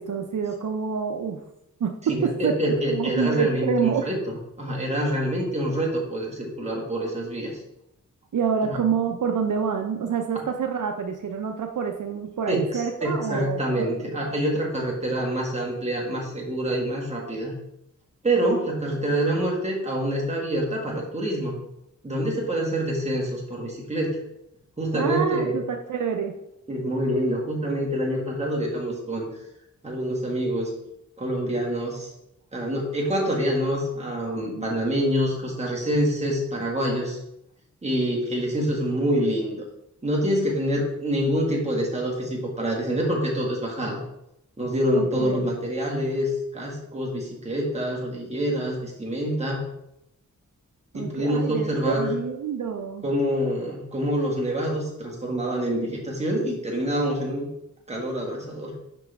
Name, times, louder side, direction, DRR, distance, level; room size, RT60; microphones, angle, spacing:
voice 1, 0.0-1.4 1.8-2.6 2.9-4.0 8.3-14.3 24.9-26.3 34.4-34.7 44.9-45.5 50.9-53.1, right 6 dB, 70° right, 4 dB, 0.6 m, -27 dB
voice 2, 2.1-7.6 8.6-8.9 10.3-10.4 12.5-17.6 18.2-21.6 22.0-24.2 24.8-25.6 26.7-29.3 29.8-30.7 31.2-32.1 32.5-37.2 37.8-39.6 40.0-44.0 44.6-49.6 50.9-52.1 53.0-57.5 57.9-58.7, equal, 20° right, -2 dB, 1.8 m, -26 dB
6.0 x 5.7 x 3.5 m, 0.82 s
wide cardioid pair, 110°, 32 cm